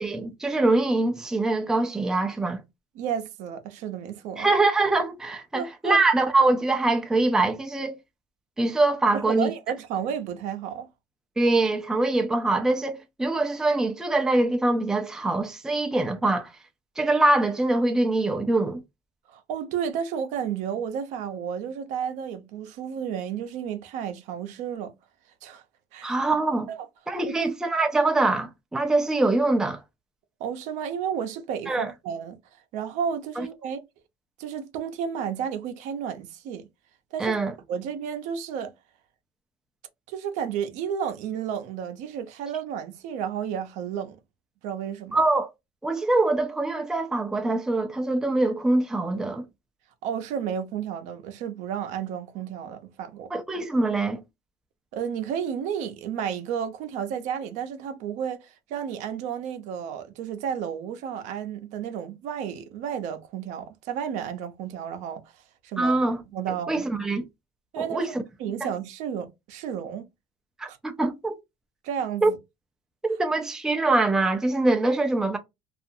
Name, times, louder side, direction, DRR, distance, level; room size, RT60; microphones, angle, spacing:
voice 1, 0.0-2.6 4.4-7.9 8.6-9.5 11.4-16.5 17.0-18.8 26.0-26.7 27.1-29.8 31.7-31.9 33.4-33.5 37.2-37.5 45.1-45.5 45.8-49.4 53.3-54.2 65.8-66.2 66.7-67.2 67.8-68.2 68.6-68.7 70.6-71.4 72.2-72.3 73.0-75.4, right 2 dB, 5° right, 0.4 m, -23 dB
voice 2, 3.0-4.5 5.5-6.0 9.1-10.9 19.3-24.9 25.4-25.6 25.9-26.2 26.7-26.9 27.4-27.5 30.4-32.4 32.7-33.8 34.4-36.7 37.1-37.4 37.7-38.7 40.1-44.2 44.6-45.2 50.0-53.3 54.9-65.2 65.6-66.0 66.3-66.9 67.7-68.0 68.4-70.1 70.7-70.8 71.8-72.4, right 8 dB, 65° right, 0.6 m, -32 dB
2.5 x 2.4 x 2.6 m
cardioid pair, 135°, 13 cm